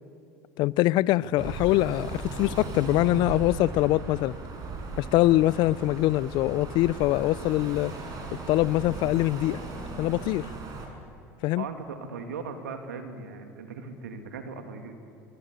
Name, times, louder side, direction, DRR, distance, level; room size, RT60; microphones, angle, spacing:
voice 1, 0.6-4.3 5.0-7.9 8.5-9.6 10.0-10.5 11.4-11.6, left 16 dB, 60° left, 0.6 m, -23 dB
sound 1, 1.4-10.9, right 3 dB, 45° right, 6.0 m, -37 dB
voice 2, 11.6-14.9, right 5 dB, 85° right, 2.3 m, -38 dB
23.5 x 22.5 x 8.1 m
hypercardioid pair, 80°, 9 cm